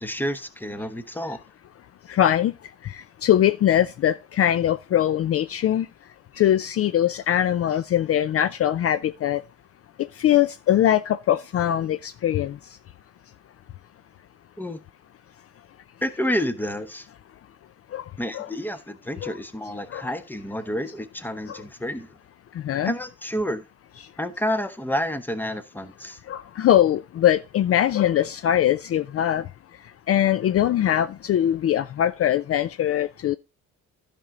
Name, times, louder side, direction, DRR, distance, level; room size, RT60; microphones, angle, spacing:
voice 1, 0.0-1.4 14.6-14.8 16.0-17.1 18.2-22.1 22.8-23.7 24.2-26.2, equal, 5° left, 1.0 m, -29 dB
voice 2, 2.1-2.5 3.2-5.9 6.4-9.4 10.2-12.5 17.9-18.0 18.3-18.5 19.2-19.3 19.9-20.1 21.5-21.6 22.6-22.9 26.3-29.4 30.1-33.4, left 11 dB, 50° left, 0.4 m, -21 dB
11.0 x 6.0 x 3.7 m
cardioid pair, 90°, 30 cm